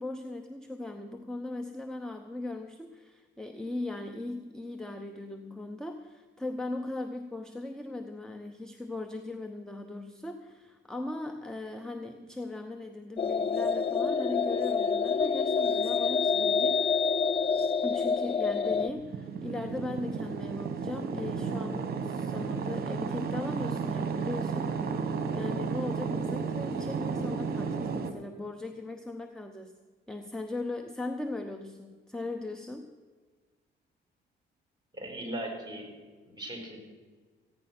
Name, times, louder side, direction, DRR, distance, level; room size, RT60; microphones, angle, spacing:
voice 1, 0.0-17.0 17.8-24.7 25.3-29.7 30.1-32.9, left 2 dB, 5° left, 5 dB, 0.9 m, -38 dB
sound 1, 13.2-18.9, left 5 dB, 30° left, 0.5 m, -27 dB
sound 2, 18.7-28.1, right 5 dB, 50° right, 1.4 m, -33 dB
voice 2, 34.9-35.9 36.2-36.8, right 1 dB, 20° right, 2 dB, 4.7 m, -38 dB
15.5 x 9.8 x 6.0 m, 1.4 s
cardioid pair, 90°, 20 cm